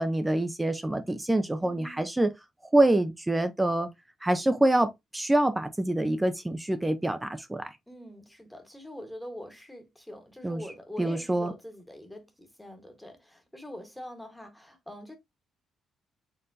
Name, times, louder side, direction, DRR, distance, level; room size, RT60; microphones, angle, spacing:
voice 1, 0.0-2.3 2.7-3.9 4.2-7.7 10.4-10.6 11.0-11.5, right 1 dB, 10° right, 0.5 m, -26 dB
voice 2, 1.6-2.0 7.9-15.2, left 1 dB, 5° left, 1.2 m, -44 dB
4.5 x 3.6 x 2.6 m
cardioid pair, 90°, 0 cm